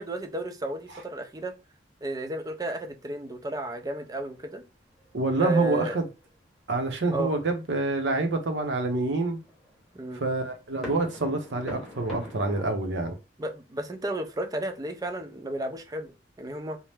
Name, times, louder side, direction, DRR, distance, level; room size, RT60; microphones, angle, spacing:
voice 1, 0.0-1.5 2.0-4.6 5.4-6.0 7.1-7.3 9.9-10.2 13.4-16.8, right 2 dB, 20° right, 0.4 m, -33 dB
sound 1, 4.4-5.1 5.4-5.5 6.2-6.8 7.3-12.7, left 1 dB, ahead, 0.9 m, -43 dB
voice 2, 5.1-6.0 6.7-9.4 10.2-13.1, right 2 dB, 85° right, 0.7 m, -27 dB
2.8 x 2.0 x 3.3 m
head